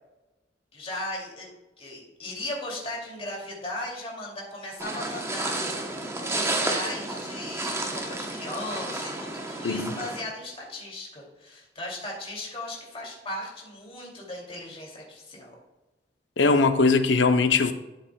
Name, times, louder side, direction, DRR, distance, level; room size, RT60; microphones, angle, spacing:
voice 1, 0.7-1.5 1.8-15.6, left 1 dB, 35° left, 2.5 m, -37 dB
sound 1, 4.8-10.2, right 2 dB, 15° right, 0.9 m, -31 dB
voice 2, 16.4-17.7, left 4 dB, 80° left, 0.7 m, -20 dB
12.0 x 7.3 x 2.3 m
head